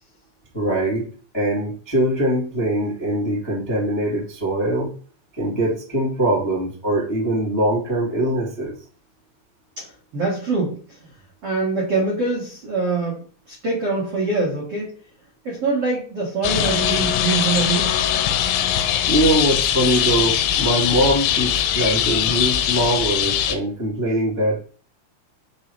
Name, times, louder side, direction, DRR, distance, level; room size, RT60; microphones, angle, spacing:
voice 1, 0.5-1.1 1.3-4.9 5.4-8.7 19.0-24.7, right 1 dB, 25° left, -6 dB, 0.5 m, -22 dB
voice 2, 10.1-10.8 11.4-13.2 13.5-14.9 15.4-17.9, right 3 dB, 75° right, -4 dB, 1.4 m, -24 dB
sound 1, 16.4-23.6, left 9 dB, 85° left, 3.2 m, -21 dB
6.7 x 4.2 x 4.7 m, 0.42 s
omnidirectional pair, 5.7 m